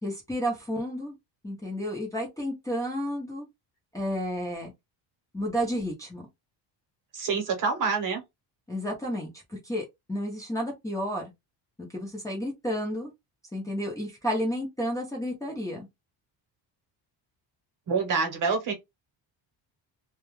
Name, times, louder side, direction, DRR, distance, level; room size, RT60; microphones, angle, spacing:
voice 1, 0.0-1.1 1.4-3.4 3.9-4.7 5.3-6.2 8.7-11.2 11.9-13.1 13.5-15.9, equal, 10° left, 0.6 m, -31 dB
voice 2, 7.1-8.2 17.9-18.7, right 5 dB, 45° right, 0.9 m, -26 dB
2.3 x 2.2 x 3.0 m
cardioid pair, 165°, 44 cm